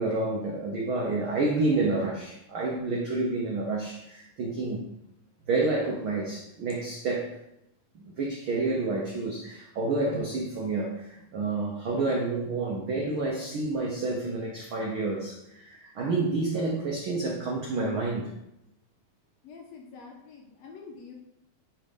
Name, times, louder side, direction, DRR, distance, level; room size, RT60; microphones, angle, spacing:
voice 1, 0.0-4.8 5.5-7.4 8.0-18.3, right 3 dB, 85° right, -2 dB, 1.1 m, -29 dB
voice 2, 19.4-21.2, left 5 dB, 65° left, 0 dB, 2.0 m, -46 dB
9.8 x 3.3 x 5.2 m, 0.83 s
omnidirectional pair, 3.8 m